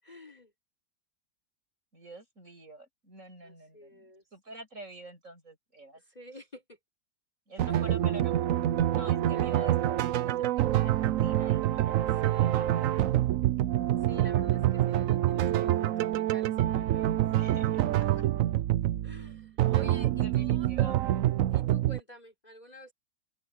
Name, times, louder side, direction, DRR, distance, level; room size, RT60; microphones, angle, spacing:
voice 1, 0.0-0.5 3.4-4.2 5.9-6.8 7.7-7.8 9.3-9.5 12.0-12.7 14.0-17.2 18.0-18.3 19.0-20.7 21.5-22.9, equal, 25° left, 3.7 m, -49 dB
voice 2, 1.9-6.0 7.5-12.9 17.4-17.9 20.2-21.2, right 1 dB, 45° right, 7.7 m, -47 dB
sound 1, 7.6-22.0, right 13 dB, 65° right, 0.9 m, -26 dB
open air
omnidirectional pair, 1.8 m